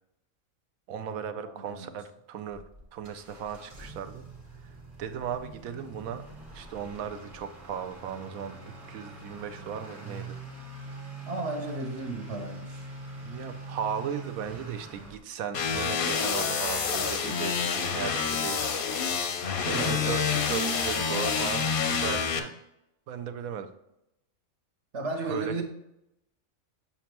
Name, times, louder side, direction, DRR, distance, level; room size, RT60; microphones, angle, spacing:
voice 1, 0.9-2.6 2.9-4.2 5.0-6.2 6.5-10.4 13.2-18.8 19.8-22.5 23.1-23.7 25.2-25.6, right 7 dB, 80° right, 10 dB, 1.1 m, -36 dB
voice 2, 1.6-1.9 11.3-12.8 19.7-20.2 21.0-21.1 24.9-25.6, right 3 dB, 55° right, 3 dB, 1.2 m, -34 dB
Motor vehicle (road) / Accelerating revving vroom, 2.5-15.2, right 3 dB, 25° right, 1.1 m, -43 dB
sound 1, 15.5-22.4, left 6 dB, 50° left, 0.7 m, -28 dB
7.3 x 5.7 x 3.0 m, 0.84 s
omnidirectional pair, 1.5 m